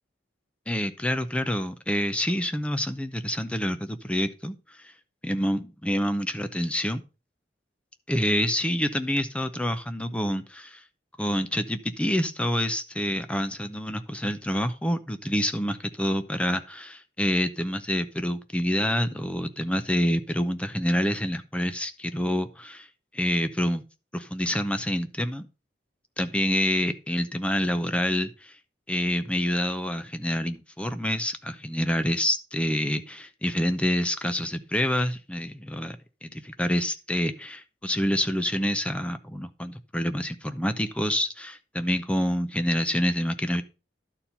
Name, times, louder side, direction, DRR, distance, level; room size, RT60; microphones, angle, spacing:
voice 1, 0.7-4.9 5.2-7.0 8.1-10.8 11.2-22.9 23.1-23.8 24.1-25.5 26.2-28.5 28.9-43.6, equal, 5° left, 10 dB, 0.6 m, -27 dB
11.5 x 4.4 x 5.5 m, 0.32 s
head